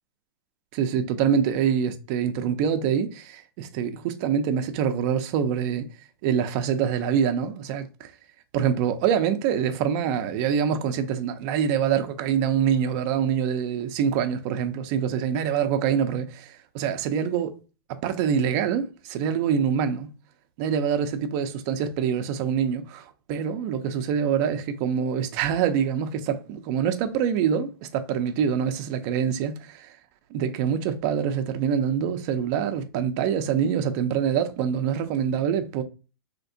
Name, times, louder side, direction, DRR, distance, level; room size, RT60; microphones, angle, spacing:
voice 1, 0.7-5.9 6.2-8.1 8.5-17.5 18.0-20.1 20.6-30.0 30.3-35.8, right 8 dB, 45° right, 0.5 m, -25 dB
3.3 x 2.9 x 2.6 m
hypercardioid pair, 135°, 13 cm